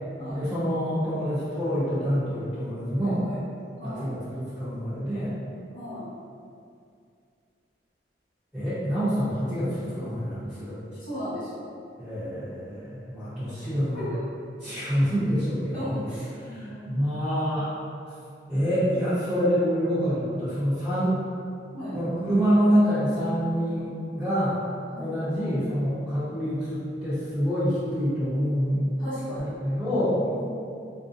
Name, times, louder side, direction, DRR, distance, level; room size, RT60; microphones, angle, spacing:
voice 1, 0.3-3.2 3.8-5.4 8.5-10.8 12.0-14.0 14.6-16.0 16.5-17.7 18.5-21.2 21.9-24.6 25.0-28.9 29.4-30.2, equal, 5° right, -18 dB, 0.8 m, -26 dB
voice 2, 3.0-3.4 3.8-4.1 5.7-6.0 11.0-11.7 13.9-14.2 15.7-17.0 21.7-21.9 24.9-25.6 29.0-29.5 30.3-30.4, equal, 50° left, -13 dB, 0.9 m, -36 dB
2.6 x 2.0 x 2.4 m, 2.4 s
head